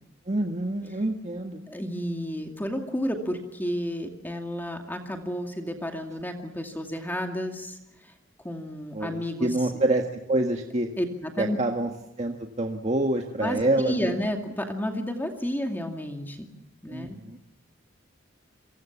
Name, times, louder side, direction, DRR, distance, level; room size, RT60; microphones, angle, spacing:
voice 1, 0.3-1.6 8.9-10.9 11.4-11.9 12.2-14.1 16.9-17.4, right 2 dB, 35° right, 3 dB, 1.7 m, -27 dB
voice 2, 1.7-8.1 8.4-9.7 11.0-11.6 13.4-16.5 16.8-17.2, equal, 10° left, 4 dB, 2.3 m, -31 dB
28.5 x 24.0 x 7.3 m, 0.88 s
head